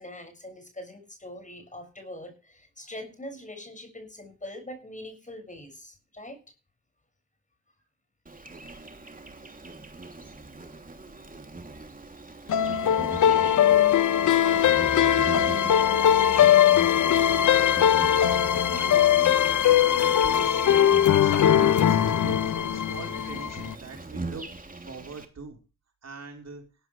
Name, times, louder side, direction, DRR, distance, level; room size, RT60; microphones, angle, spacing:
voice 1, 0.0-6.4, left 1 dB, 25° left, 5 dB, 6.8 m, -42 dB
Insect, 8.3-25.3, right 3 dB, 25° right, 3.2 m, -40 dB
sound 1, 12.5-23.7, left 10 dB, 75° left, 1.1 m, -21 dB
voice 2, 18.7-20.9 21.2-24.4 24.8-25.6 26.0-26.6, right 4 dB, 55° right, 3 dB, 4.5 m, -43 dB
16.0 x 13.5 x 3.4 m, 0.32 s
cardioid pair, 55°, 30 cm